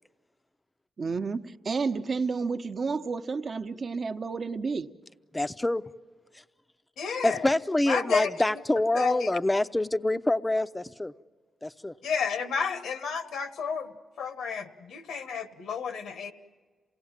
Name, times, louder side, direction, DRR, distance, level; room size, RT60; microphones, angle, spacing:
voice 1, 1.0-4.9, right 4 dB, 45° right, 8 dB, 0.9 m, -31 dB
voice 2, 5.3-5.9 7.2-11.1 11.6-11.9, left 1 dB, 15° left, 13 dB, 0.6 m, -26 dB
voice 3, 7.0-7.4 7.9-8.3 8.9-9.3 12.0-13.9 14.2-16.3, left 6 dB, 85° left, 9 dB, 1.3 m, -31 dB
27.5 x 17.5 x 7.4 m, 1.5 s
cardioid pair, 85°, 0 cm